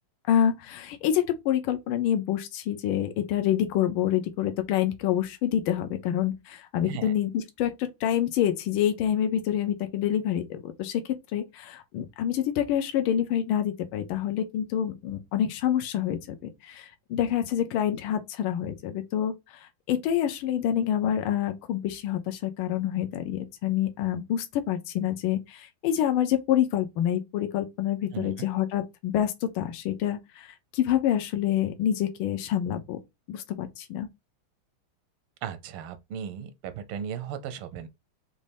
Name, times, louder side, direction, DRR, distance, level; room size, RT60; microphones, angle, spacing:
voice 1, 0.3-33.0 33.3-34.1, left 10 dB, 80° left, 1.5 m, -27 dB
voice 2, 35.4-37.9, right 8 dB, 90° right, 1.5 m, -36 dB
5.4 x 2.5 x 3.3 m
omnidirectional pair, 2.3 m